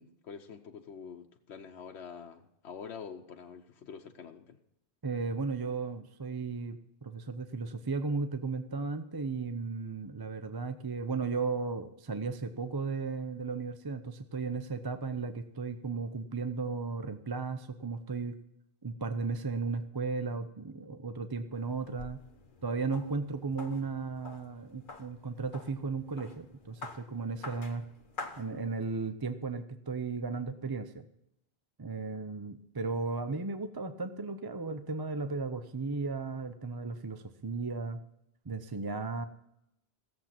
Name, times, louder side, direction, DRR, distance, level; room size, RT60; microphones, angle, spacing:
voice 1, 0.0-4.6, left 6 dB, 85° left, 3 dB, 1.0 m, -46 dB
voice 2, 5.0-18.3 18.8-22.2 22.6-27.9 28.4-30.9 31.8-38.0 38.5-39.3, right 4 dB, 25° right, 9 dB, 0.6 m, -35 dB
sound 1, 21.5-29.1, left 3 dB, 50° left, 1.2 m, -48 dB
16.5 x 7.6 x 5.9 m, 0.79 s
omnidirectional pair, 1.1 m